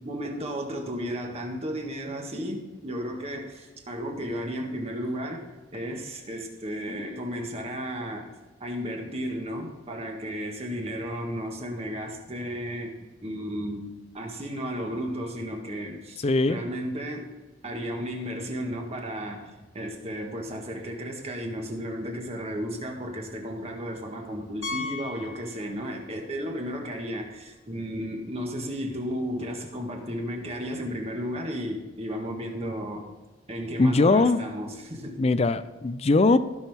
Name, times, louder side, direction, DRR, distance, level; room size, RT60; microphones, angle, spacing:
voice 1, 0.0-5.5 5.7-8.3 8.6-17.3 17.6-33.1 33.5-35.2, equal, 30° right, 2 dB, 1.6 m, -34 dB
voice 2, 16.2-16.6 33.8-34.4 35.2-36.4, left 3 dB, 35° left, 13 dB, 0.4 m, -21 dB
Piano, 24.6-26.2 26.5-26.6 27.2-27.3 27.6-27.7 29.7-29.8, left 3 dB, 80° left, 1.6 m, -37 dB
15.5 x 6.2 x 3.5 m, 1.3 s
head